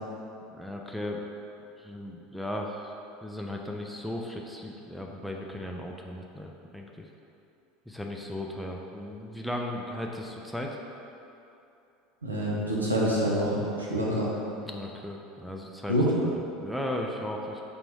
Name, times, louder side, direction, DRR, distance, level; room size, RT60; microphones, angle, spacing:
voice 1, 0.5-1.2 1.8-2.9 3.2-7.1 7.9-10.8 14.7-17.6, left 1 dB, ahead, 0 dB, 0.4 m, -36 dB
voice 2, 12.2-14.3 15.9-16.1, equal, 90° right, -5 dB, 0.7 m, -26 dB
3.9 x 3.4 x 3.1 m, 2.8 s
figure-of-eight pair, 75°, 0 cm